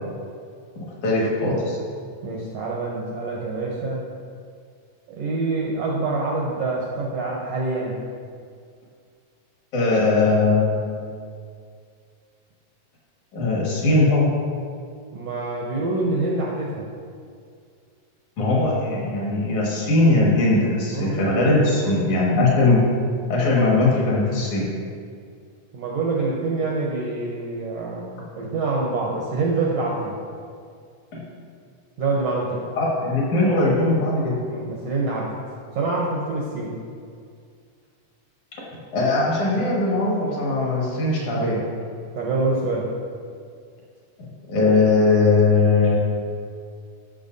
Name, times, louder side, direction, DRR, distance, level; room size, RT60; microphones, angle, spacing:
voice 1, 0.8-1.8 9.7-11.1 13.3-14.4 18.4-22.8 23.3-24.7 31.1-31.2 32.8-34.4 38.9-41.6 44.5-46.0, left 2 dB, 65° left, -5 dB, 3.0 m, -20 dB
voice 2, 2.2-4.0 5.1-7.9 15.1-16.8 20.9-21.2 21.8-21.9 25.7-30.2 32.0-32.6 34.5-35.4 35.7-36.8 42.1-42.9, right 3 dB, 75° right, -3 dB, 1.5 m, -26 dB
13.5 x 5.7 x 2.6 m, 2.2 s
omnidirectional pair, 3.8 m